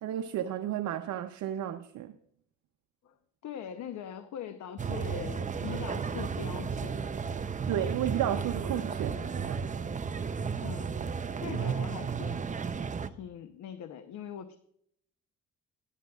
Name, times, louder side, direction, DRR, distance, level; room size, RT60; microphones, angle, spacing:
voice 1, 0.0-2.1 7.7-9.6, right 11 dB, 70° right, 0.7 m, -32 dB
voice 2, 3.4-7.1 10.6-11.0 11.4-12.4 13.1-14.6, left 8 dB, 70° left, 0.8 m, -41 dB
sound 1, 4.8-13.1, right 6 dB, 25° right, 0.6 m, -33 dB
18.0 x 9.2 x 2.3 m
cardioid pair, 90°, 30 cm